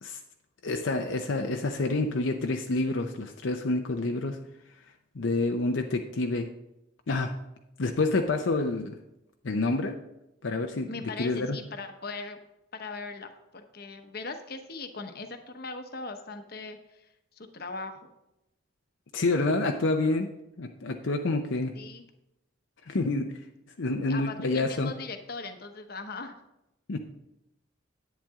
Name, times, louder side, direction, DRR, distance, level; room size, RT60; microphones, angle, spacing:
voice 1, 0.6-4.4 5.2-6.5 7.1-7.3 7.8-9.0 9.4-10.0 10.4-11.6 19.1-20.3 20.6-21.7 22.9-23.3 23.8-24.9 26.9-27.0, left 2 dB, 75° left, 4 dB, 0.7 m, -28 dB
voice 2, 10.8-12.4 12.7-17.1 17.4-18.1 21.7-22.0 24.1-26.4, left 3 dB, 50° left, 7 dB, 1.0 m, -39 dB
10.5 x 8.8 x 3.6 m, 0.88 s
head